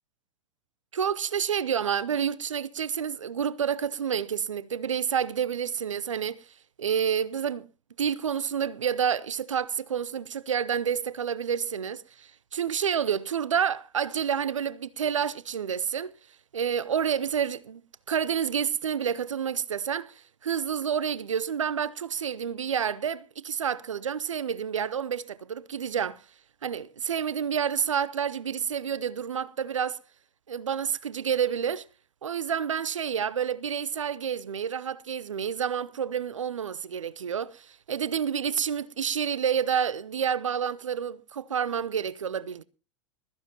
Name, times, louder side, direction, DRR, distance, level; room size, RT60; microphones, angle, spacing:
voice 1, 0.9-6.4 6.8-7.7 8.0-16.1 16.5-17.8 18.1-20.1 20.4-26.2 26.6-30.0 30.5-31.8 32.2-42.6, right 8 dB, 80° right, 0.6 m, -29 dB
20.5 x 14.0 x 2.9 m
figure-of-eight pair, 90°, 16 cm